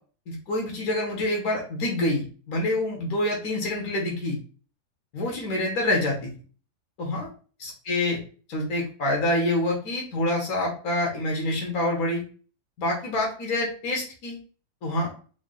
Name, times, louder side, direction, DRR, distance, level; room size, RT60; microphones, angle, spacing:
voice 1, 0.3-4.4 5.1-6.3 7.0-7.3 7.6-8.2 8.5-12.2 12.8-14.4 14.8-15.1, left 1 dB, 65° left, -1 dB, 1.5 m, -26 dB
3.7 x 2.1 x 3.7 m, 0.38 s
omnidirectional pair, 1.8 m